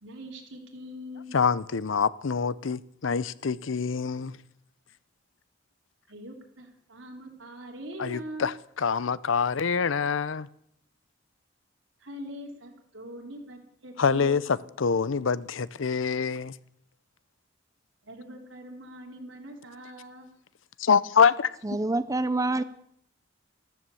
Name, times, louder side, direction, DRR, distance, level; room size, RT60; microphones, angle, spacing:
voice 1, 0.0-1.4 6.1-8.5 12.0-14.6 18.0-20.3, equal, 85° right, 3.6 m, -42 dB
voice 2, 1.3-4.4 8.0-10.5 14.0-14.4 14.8-16.5 20.8-21.5, left 6 dB, 90° left, 0.6 m, -25 dB
voice 3, 21.6-22.6, right 2 dB, 15° right, 0.5 m, -26 dB
14.0 x 14.0 x 7.1 m
head